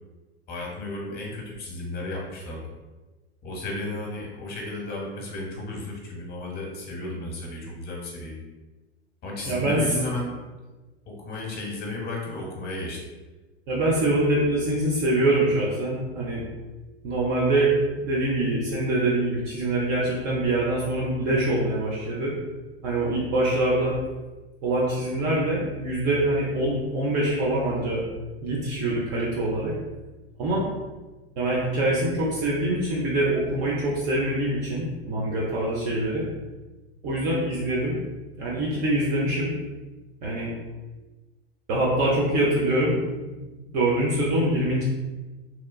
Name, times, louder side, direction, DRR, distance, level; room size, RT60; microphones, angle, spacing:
voice 1, 0.5-2.7 3.4-8.4 9.2-10.4 11.1-13.0, left 2 dB, 30° left, -2 dB, 0.8 m, -33 dB
voice 2, 9.5-9.8 13.7-16.4 17.0-22.3 22.8-24.0 24.6-28.0 28.4-29.7 30.4-30.6 31.4-36.3 37.0-38.0 38.4-39.6 40.2-40.5 41.7-43.0 43.3-43.4 43.7-44.8, right 1 dB, 45° right, -5 dB, 0.6 m, -24 dB
2.9 x 2.2 x 2.3 m, 1.2 s
hypercardioid pair, 100°, 33 cm